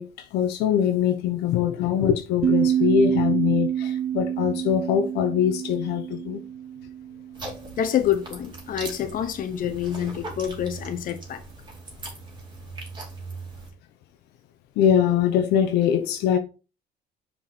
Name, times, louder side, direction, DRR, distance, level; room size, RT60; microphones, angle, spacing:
voice 1, 0.0-6.4 14.8-16.4, left 9 dB, 85° left, 0.9 m, -23 dB
sound 1, 2.4-7.6, right 10 dB, 45° right, 0.4 m, -26 dB
sound 2, 7.3-13.7, right 3 dB, 25° right, 2.6 m, -40 dB
voice 2, 7.8-11.4, left 10 dB, 55° left, 1.1 m, -27 dB
6.0 x 4.8 x 4.2 m
cardioid pair, 110°, 17 cm